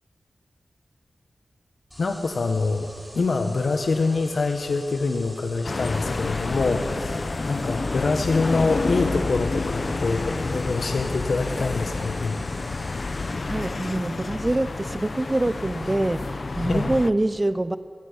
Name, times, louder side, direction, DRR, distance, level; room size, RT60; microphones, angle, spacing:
sound 1, 1.9-13.3, equal, ahead, 5.4 m, -45 dB
voice 1, 2.0-2.9 3.1-12.4 16.7-16.9, left 3 dB, 65° left, 5 dB, 1.5 m, -25 dB
sound 2, 5.6-17.1, left 3 dB, 45° left, 0.9 m, -29 dB
voice 2, 13.5-17.8, right 1 dB, 20° right, 14 dB, 0.5 m, -25 dB
24.5 x 16.5 x 10.0 m, 2.5 s
wide cardioid pair, 90°, 0 cm